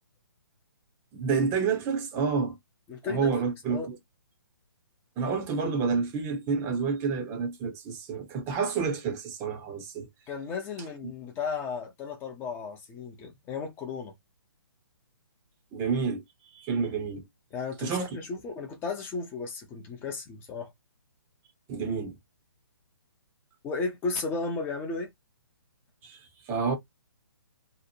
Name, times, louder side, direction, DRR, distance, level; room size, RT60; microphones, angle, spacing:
voice 1, 1.1-2.6 3.0-4.0 5.2-10.1 15.7-17.2 17.8-18.1 21.7-22.1 26.0-26.8, right 5 dB, 20° right, 0.7 m, -29 dB
voice 2, 2.9-3.3 3.7-3.9 10.3-14.1 17.5-20.7 23.6-25.1, left 4 dB, 15° left, 0.6 m, -34 dB
2.9 x 2.0 x 2.6 m
hypercardioid pair, 140°, 13 cm